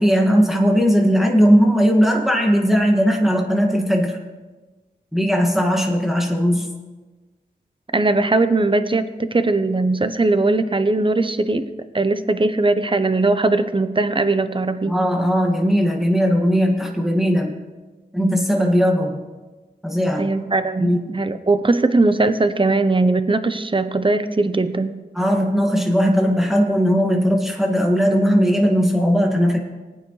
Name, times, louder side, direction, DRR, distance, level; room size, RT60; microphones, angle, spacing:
voice 1, 0.0-4.2 5.1-6.7 14.9-17.6 18.1-19.2 19.8-20.3 20.8-21.2 25.1-29.6, equal, ahead, 0 dB, 2.1 m, -18 dB
voice 2, 7.9-11.7 11.9-14.9 20.2-25.0, right 2 dB, 30° right, 11 dB, 0.8 m, -19 dB
19.5 x 9.4 x 3.3 m, 1.3 s
cardioid pair, 50°, 18 cm